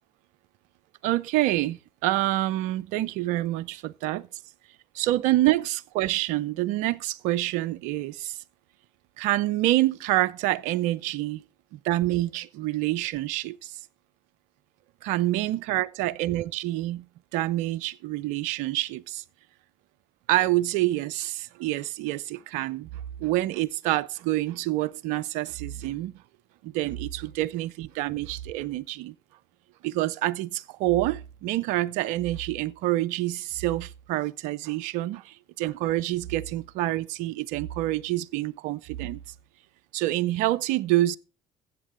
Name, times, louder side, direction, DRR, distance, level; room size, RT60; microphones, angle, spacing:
voice 1, 1.0-4.2 4.9-8.4 9.2-11.4 11.7-13.8 15.0-17.1 17.3-19.2 20.3-22.9 23.2-26.1 26.6-29.1 29.8-39.2 39.9-41.2, right 16 dB, 75° right, 0.5 m, -27 dB
13.5 x 8.1 x 3.7 m
hypercardioid pair, 60°, 13 cm